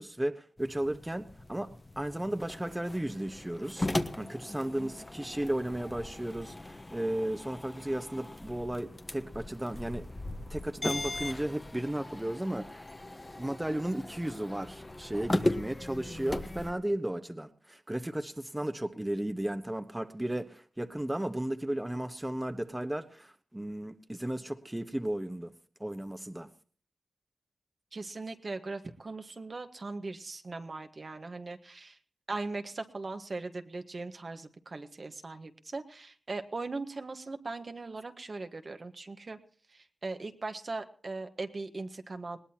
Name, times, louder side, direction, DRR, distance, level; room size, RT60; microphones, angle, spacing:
voice 1, 0.0-3.9 4.2-10.1 10.5-12.9 13.4-25.5 25.8-26.5, right 1 dB, 15° right, 8 dB, 1.2 m, -34 dB
sound 1, 0.6-16.7, left 2 dB, 30° left, 1.3 m, -38 dB
voice 2, 27.9-32.0 32.3-39.4 39.7-42.4, right 3 dB, 55° right, 6 dB, 1.5 m, -39 dB
20.5 x 18.0 x 2.9 m, 0.42 s
cardioid pair, 45°, 0 cm